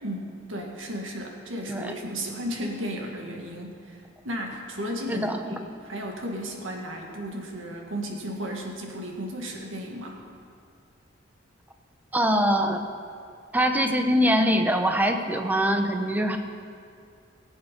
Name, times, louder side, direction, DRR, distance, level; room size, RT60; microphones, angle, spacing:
voice 1, 0.0-10.2, equal, 85° right, 1 dB, 1.9 m, -34 dB
voice 2, 5.1-5.5 12.1-12.8 13.5-16.4, equal, 10° right, 5 dB, 0.8 m, -23 dB
19.5 x 8.3 x 5.3 m, 2.4 s
head